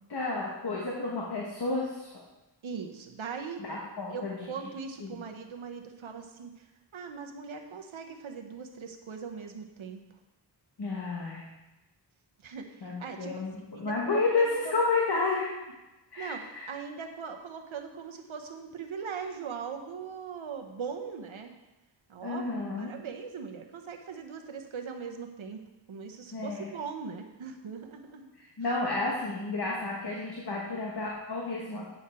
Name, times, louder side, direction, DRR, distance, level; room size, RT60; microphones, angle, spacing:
voice 1, 0.1-2.2 3.6-4.5 5.0-5.2 10.8-11.5 12.8-15.5 16.1-16.7 22.2-22.9 26.3-26.7 28.6-31.9, left 3 dB, 55° left, -3 dB, 1.4 m, -31 dB
voice 2, 2.6-3.6 4.1-6.7 6.9-10.0 12.4-13.3 13.7-14.8 16.2-16.4 16.7-21.5 22.1-22.4 22.8-25.6 25.9-28.3, right 6 dB, 80° right, 4 dB, 1.0 m, -40 dB
8.9 x 5.7 x 4.3 m, 1.0 s
wide cardioid pair, 95°, 47 cm